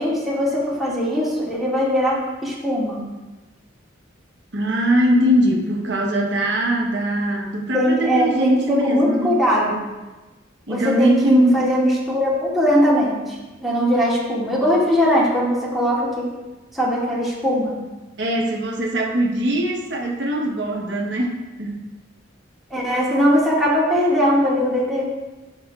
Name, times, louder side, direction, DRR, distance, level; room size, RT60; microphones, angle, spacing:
voice 1, 0.0-3.1 7.7-9.8 10.7-16.3 16.7-17.8 22.7-25.0, equal, ahead, -8 dB, 1.8 m, -20 dB
voice 2, 4.5-9.4 10.7-11.6 18.2-21.8, right 1 dB, 65° right, 0 dB, 1.0 m, -21 dB
12.0 x 4.9 x 2.3 m, 1.1 s
head